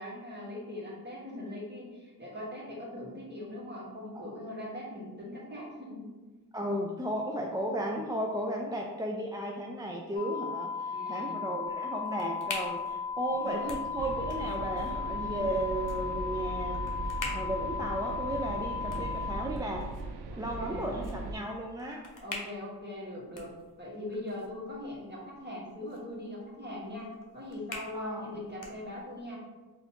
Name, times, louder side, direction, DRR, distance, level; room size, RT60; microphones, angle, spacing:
voice 1, 0.0-6.1 10.9-11.4 13.3-13.8 20.3-21.0 22.2-23.5 23.8-29.5, left 1 dB, 25° right, -5 dB, 1.5 m, -41 dB
voice 2, 6.5-19.9 20.4-22.1 27.9-28.3, right 1 dB, 10° right, 0 dB, 0.3 m, -34 dB
sound 1, 10.1-19.5, left 6 dB, 25° left, 0.9 m, -36 dB
sound 2, 11.6-29.3, left 2 dB, 50° left, 0.9 m, -47 dB
sound 3, 14.0-21.4, right 3 dB, 70° right, 0.5 m, -39 dB
3.9 x 2.6 x 2.9 m, 1.2 s
cardioid pair, 40°, 41 cm